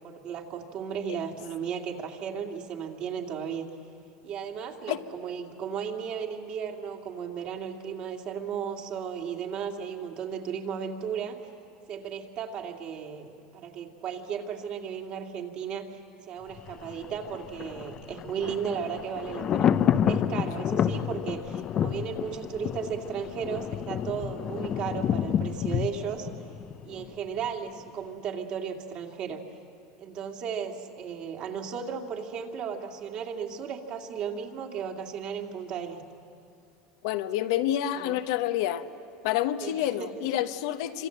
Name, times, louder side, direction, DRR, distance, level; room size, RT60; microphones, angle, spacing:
voice 1, 0.0-3.7 4.2-11.4 11.9-15.9 16.3-19.7 20.1-26.3 26.8-29.4 30.0-36.0 38.0-38.1 39.6-40.2, right 7 dB, 45° right, 3 dB, 2.4 m, -35 dB
Thunder, 16.5-27.5 27.8-27.9, left 9 dB, 35° left, 0.7 m, -29 dB
voice 2, 37.0-38.9 39.2-41.1, left 12 dB, 75° left, 9 dB, 1.1 m, -28 dB
27.5 x 26.0 x 7.9 m, 2.5 s
supercardioid pair, 140°, 2 cm